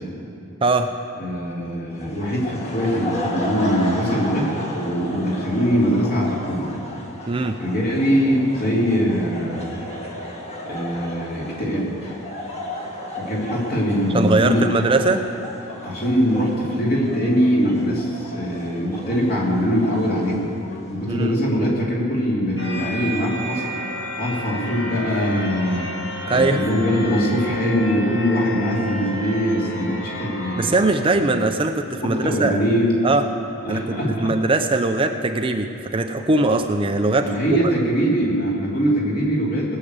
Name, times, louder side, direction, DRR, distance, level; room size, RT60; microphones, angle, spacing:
voice 1, 1.2-6.7 7.6-9.7 10.6-12.1 13.2-14.7 15.7-20.5 20.9-23.7 24.2-25.9 26.3-30.7 31.1-31.4 32.0-32.9 33.6-34.3 37.2-39.8, equal, 45° left, -4 dB, 2.9 m, -22 dB
sound 1, 1.9-21.3, left 1 dB, 30° left, 1.8 m, -34 dB
voice 2, 7.3-7.6 14.1-15.2 21.1-21.3 26.3-26.6 30.6-32.6 33.0-33.2 33.7-37.3, right 2 dB, 25° right, 6 dB, 0.5 m, -20 dB
sound 2, 22.6-31.0, left 1 dB, 65° left, 2.1 m, -32 dB
18.5 x 6.6 x 8.1 m, 2.8 s
head